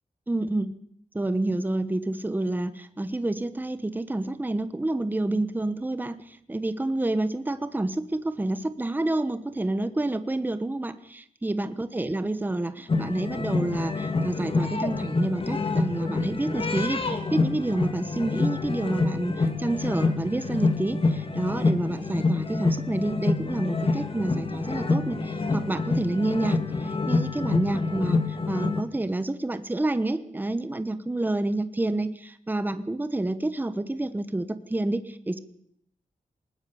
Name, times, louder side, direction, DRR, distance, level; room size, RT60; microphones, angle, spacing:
voice 1, 0.3-0.7 1.1-28.2 28.5-35.4, right 2 dB, 15° right, 12 dB, 1.0 m, -28 dB
sound 1, 12.9-28.8, left 3 dB, 40° left, 2.2 m, -27 dB
20.5 x 20.0 x 7.0 m, 0.69 s
wide cardioid pair, 150°, 14 cm